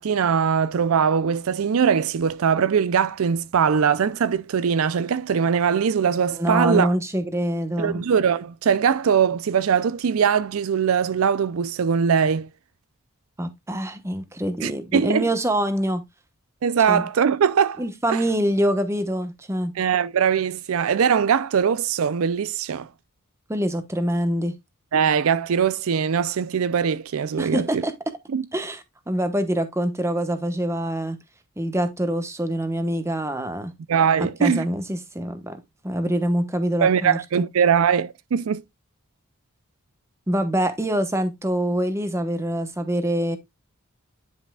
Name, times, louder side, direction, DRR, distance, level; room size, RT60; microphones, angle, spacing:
voice 1, 0.0-6.9 7.8-12.5 14.6-15.3 16.6-17.8 18.1-18.2 19.8-22.9 24.9-27.8 28.3-28.4 33.9-34.6 36.8-38.6, right 7 dB, 70° right, 0.4 m, -21 dB
voice 2, 6.4-8.0 13.4-16.0 16.9-17.0 17.8-19.7 23.5-24.6 27.4-27.9 28.5-31.2 31.6-33.7 34.2-37.5 40.3-43.4, right 1 dB, 10° right, 1.0 m, -25 dB
10.0 x 5.6 x 2.3 m
head